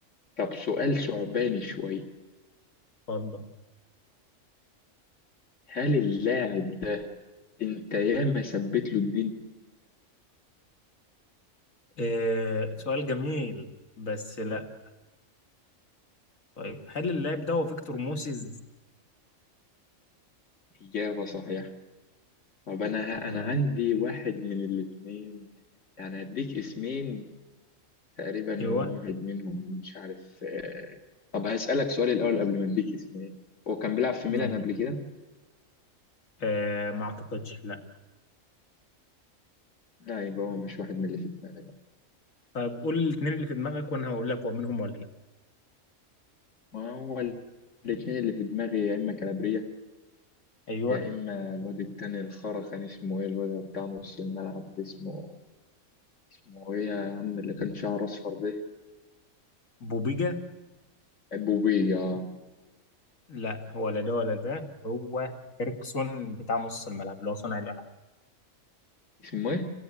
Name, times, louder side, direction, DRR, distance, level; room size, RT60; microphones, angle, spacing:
voice 1, 0.4-2.0 5.7-7.1 7.6-9.4 20.8-21.7 22.7-25.5 26.0-27.3 28.2-30.2 30.4-31.0 31.3-33.3 33.7-35.0 40.0-41.7 46.7-47.4 47.8-49.6 50.8-55.4 56.5-58.6 61.3-62.3 69.2-69.7, left 5 dB, 65° left, 3 dB, 2.7 m, -30 dB
voice 2, 3.1-3.4 12.0-13.7 14.0-14.7 16.6-18.5 23.2-23.5 28.6-28.9 34.3-34.5 36.4-37.8 42.5-45.1 50.7-51.0 59.8-60.4 63.3-65.3 65.6-67.9, left 2 dB, 80° left, 4 dB, 2.4 m, -31 dB
27.0 x 17.5 x 9.8 m, 1.2 s
omnidirectional pair, 1.4 m